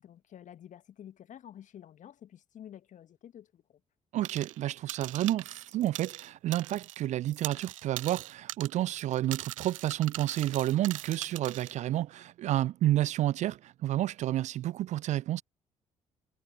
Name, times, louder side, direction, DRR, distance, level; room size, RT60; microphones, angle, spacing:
voice 1, 0.0-3.8, left 10 dB, 50° left, 1.8 m, -50 dB
voice 2, 4.1-15.4, right 14 dB, 45° right, 0.4 m, -30 dB
sound 1, 4.2-4.6 4.9-7.0 7.3-11.7, right 15 dB, 75° right, 0.8 m, -41 dB
figure-of-eight pair, 45°, 17 cm